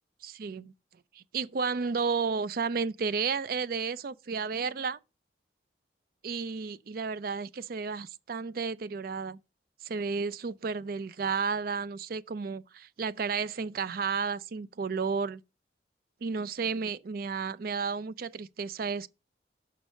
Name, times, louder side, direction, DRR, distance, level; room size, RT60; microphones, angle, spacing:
voice 1, 0.2-0.7 1.1-5.0 6.2-9.4 9.8-15.4 16.2-19.1, right 5 dB, 55° right, 0.4 m, -32 dB
6.4 x 4.7 x 6.2 m
head